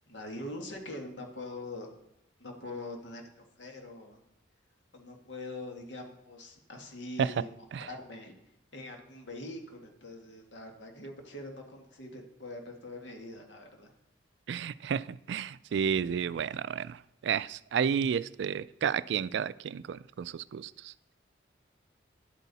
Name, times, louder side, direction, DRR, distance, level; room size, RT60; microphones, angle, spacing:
voice 1, 0.1-1.9 2.4-4.2 4.9-8.4 8.7-13.9, left 2 dB, 75° left, 1.9 m, -43 dB
voice 2, 14.5-20.9, right 7 dB, 65° right, 0.3 m, -31 dB
11.0 x 8.3 x 4.1 m
head